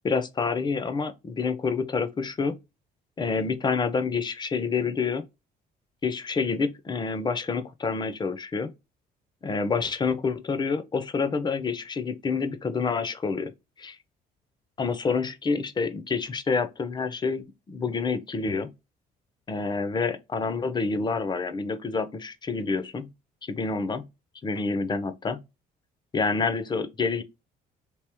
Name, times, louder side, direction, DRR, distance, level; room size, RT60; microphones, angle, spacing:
voice 1, 0.0-2.6 3.2-5.2 6.0-8.7 9.4-13.5 13.8-14.0 14.8-18.7 19.5-23.1 23.4-24.1 24.4-25.4 26.1-27.2, left 4 dB, 25° left, 0.5 m, -28 dB
3.4 x 2.8 x 2.9 m
cardioid pair, 110°, 17 cm